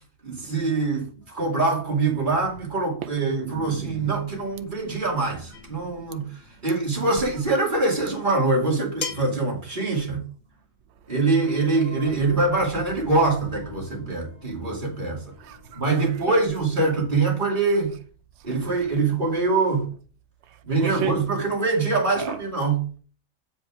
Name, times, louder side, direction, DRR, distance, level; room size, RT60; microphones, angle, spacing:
voice 1, 0.2-10.2 11.1-15.2 15.7-17.9 18.4-19.9 20.6-22.9, right 3 dB, 35° right, 2.7 m, -24 dB
sound 1, 2.0-9.5 9.8-9.9 10.5-10.6 11.1-16.3, left 1 dB, 45° left, 3.3 m, -44 dB
sound 2, 5.5-5.9 7.4-7.5 9.0-9.5, left 5 dB, 80° left, 2.2 m, -34 dB
voice 2, 7.0-7.4 15.4-16.4 18.5-19.0 20.7-21.2 22.2-22.4, right 9 dB, 55° right, 1.0 m, -34 dB
8.0 x 5.2 x 4.9 m
omnidirectional pair, 1.5 m